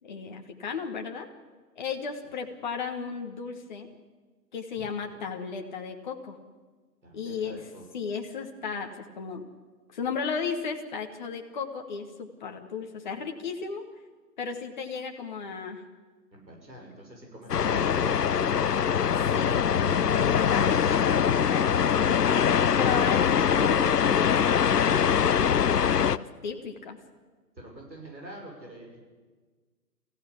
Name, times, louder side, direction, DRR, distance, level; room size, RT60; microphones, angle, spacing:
voice 1, 0.0-1.3 1.8-3.9 4.5-6.4 7.1-7.6 7.9-9.5 9.9-13.9 14.4-15.8 17.7-17.8 19.3-19.6 20.2-22.1 22.7-23.8 24.1-24.9 25.3-27.0, left 6 dB, 30° left, 3 dB, 1.4 m, -35 dB
voice 2, 7.0-7.8 16.3-19.0 19.5-20.2 27.6-29.0, right 1 dB, 85° right, -1 dB, 6.2 m, -46 dB
sound 1, 17.5-26.2, left 8 dB, 70° left, 0.7 m, -23 dB
23.0 x 15.5 x 8.4 m, 1.4 s
figure-of-eight pair, 150°, 50 cm